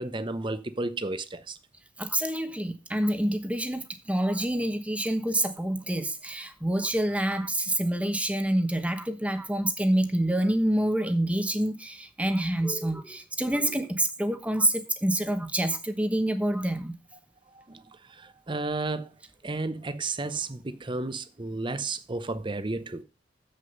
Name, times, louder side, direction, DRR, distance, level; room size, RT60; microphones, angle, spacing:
voice 1, 0.0-1.6 17.5-19.1 19.4-23.0, right 3 dB, 25° right, 0.7 m, -33 dB
voice 2, 2.0-16.9, right 1 dB, 5° right, 1.0 m, -27 dB
7.6 x 6.6 x 5.3 m
head